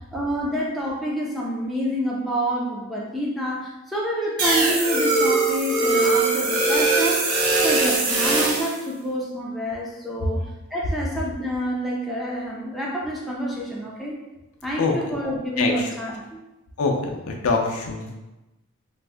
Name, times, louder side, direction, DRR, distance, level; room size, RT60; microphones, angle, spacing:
voice 1, 0.0-7.2 7.6-10.4 10.7-14.2 14.6-16.4, equal, ahead, -5 dB, 0.3 m, -28 dB
sound 1, 4.4-8.8, right 3 dB, 75° right, 0.6 m, -21 dB
voice 2, 15.6-15.9 16.8-18.1, left 4 dB, 75° left, 1 dB, 0.5 m, -24 dB
2.5 x 2.0 x 3.3 m, 1.0 s
head